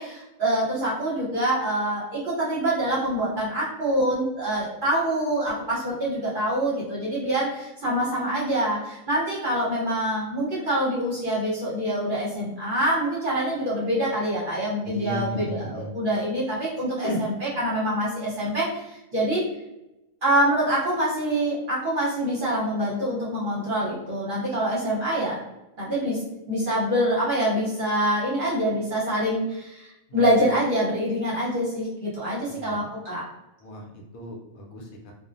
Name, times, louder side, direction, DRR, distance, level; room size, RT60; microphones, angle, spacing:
voice 1, 0.0-19.5 20.2-25.4 25.8-26.2 26.5-33.2, right 1 dB, 45° right, -8 dB, 0.8 m, -25 dB
voice 2, 14.8-15.9 17.0-17.2 18.4-18.5 30.1-30.4 32.5-32.9 33.6-35.1, left 1 dB, 75° left, 1 dB, 1.0 m, -35 dB
2.4 x 2.0 x 2.5 m, 0.93 s
omnidirectional pair, 1.5 m